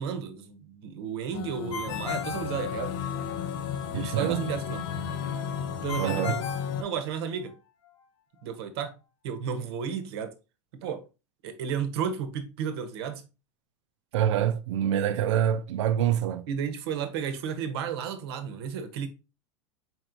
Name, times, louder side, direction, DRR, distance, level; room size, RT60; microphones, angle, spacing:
voice 1, 0.0-2.9 4.0-4.9 5.7-6.4 6.8-7.5 8.4-8.9 9.2-10.3 10.7-11.0 11.4-13.2 16.5-19.1, right 7 dB, 60° right, 0.8 m, -32 dB
sound 1, 1.3-6.8, left 7 dB, 45° left, 0.5 m, -33 dB
Ringtone, 1.7-3.3 5.9-7.5, left 6 dB, 85° left, 1.3 m, -36 dB
voice 2, 3.9-4.5 6.0-6.3 14.1-16.5, right 10 dB, 75° right, 0.5 m, -26 dB
4.4 x 4.3 x 2.6 m
supercardioid pair, 175°, 15 cm